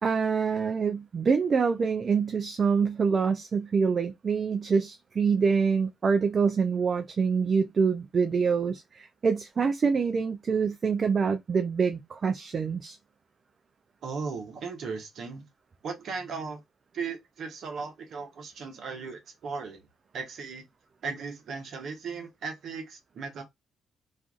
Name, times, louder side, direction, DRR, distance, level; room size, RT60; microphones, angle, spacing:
voice 1, 0.0-13.0, right 5 dB, 50° right, 0.3 m, -26 dB
voice 2, 14.0-15.4 15.8-16.6 16.9-19.8 20.1-20.6 21.0-23.4, right 5 dB, 65° right, 0.9 m, -37 dB
2.5 x 2.3 x 2.3 m
hypercardioid pair, 50°, 0 cm